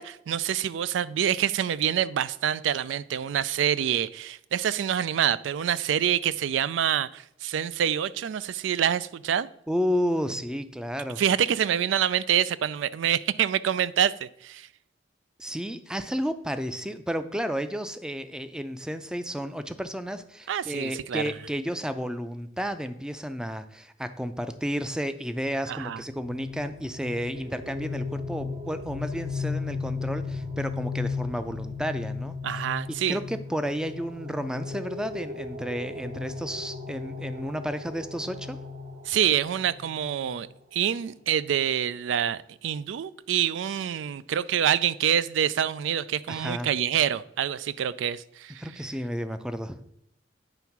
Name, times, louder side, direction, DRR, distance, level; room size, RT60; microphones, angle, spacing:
voice 1, 0.0-9.5 11.2-14.7 20.5-21.3 25.7-26.0 32.4-33.2 39.1-40.5 40.7-48.6, right 9 dB, 85° right, 18 dB, 0.3 m, -26 dB
voice 2, 9.7-11.2 15.4-32.4 32.9-38.6 46.3-46.7 48.6-49.8, equal, 5° right, 10 dB, 0.4 m, -32 dB
sound 1, 25.9-40.5, left 4 dB, 45° right, 0.8 m, -36 dB
8.9 x 3.5 x 5.8 m, 0.76 s
head